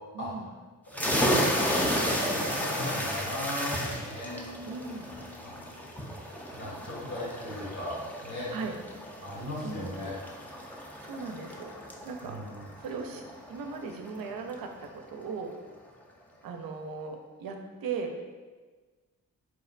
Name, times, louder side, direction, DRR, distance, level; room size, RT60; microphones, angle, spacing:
voice 1, 0.1-0.5 4.7-5.1 8.5-8.8 9.6-10.0 11.0-11.7 12.0-12.4 12.8-13.2 13.5-15.6 16.4-18.2, right 5 dB, 80° right, 4 dB, 0.5 m, -38 dB
voice 2, 0.9-4.4 5.4-5.6 6.5-8.5 9.2-10.1 12.2-12.6, left 1 dB, 60° left, -8 dB, 1.5 m, -37 dB
sound 1, 0.9-14.3, equal, 5° left, 0.4 m, -33 dB
Marimba xylophone, 4.2-6.4, left 1 dB, 90° left, 1.0 m, -49 dB
4.5 x 2.1 x 2.4 m, 1.4 s
cardioid pair, 55°, 35 cm